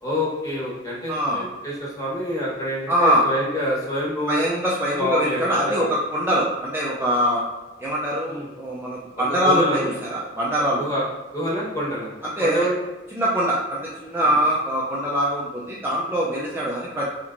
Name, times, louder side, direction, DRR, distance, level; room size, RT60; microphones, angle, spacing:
voice 1, 0.0-4.4 5.0-5.9 8.3-8.5 9.4-9.9 10.8-12.1 12.4-12.7 14.2-14.4, equal, 20° left, -6 dB, 1.1 m, -26 dB
voice 2, 1.1-1.4 2.9-3.2 4.3-7.4 7.8-10.8 12.4-12.7 13.1-17.1, equal, 10° right, -6 dB, 0.5 m, -23 dB
4.3 x 2.9 x 2.5 m, 1.1 s
head